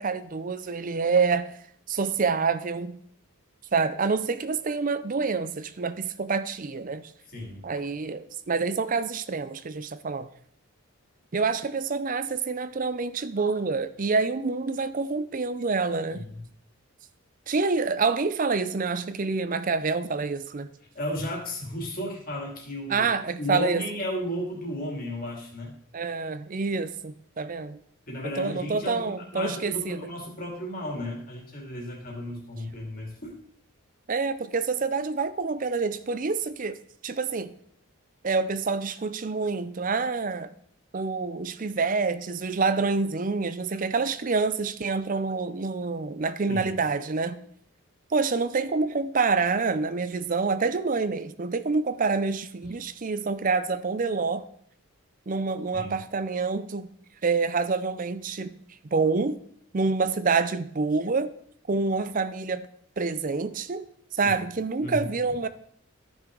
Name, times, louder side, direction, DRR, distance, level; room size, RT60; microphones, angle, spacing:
voice 1, 0.0-1.5 1.9-3.0 3.7-7.1 7.6-10.3 11.3-16.2 17.5-20.7 22.9-23.9 25.9-27.8 28.2-30.0 34.1-36.8 37.0-37.5 38.2-40.5 40.9-47.4 48.1-54.5 55.3-56.9 57.2-58.5 58.9-59.4 59.7-61.3 61.7-62.7 63.0-63.9 64.1-65.5, right 4 dB, 35° right, 0.5 m, -27 dB
voice 2, 7.3-7.6 16.1-16.4 20.9-23.1 23.4-25.7 28.1-33.3 46.5-46.7 52.6-52.7 55.7-56.0 64.2-64.4 64.8-65.1, left 1 dB, 40° left, 2.7 m, -34 dB
14.0 x 6.3 x 3.9 m
head